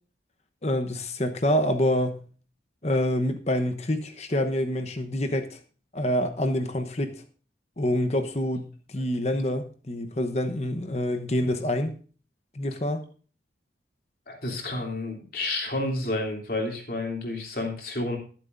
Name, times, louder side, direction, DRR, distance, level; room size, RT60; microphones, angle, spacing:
voice 1, 0.6-2.2 2.8-5.6 5.9-7.1 7.8-11.9 12.5-13.0, left 1 dB, 35° left, 1.0 m, -26 dB
voice 2, 14.3-18.2, left 2 dB, 50° left, 3.1 m, -30 dB
22.0 x 7.4 x 2.6 m
head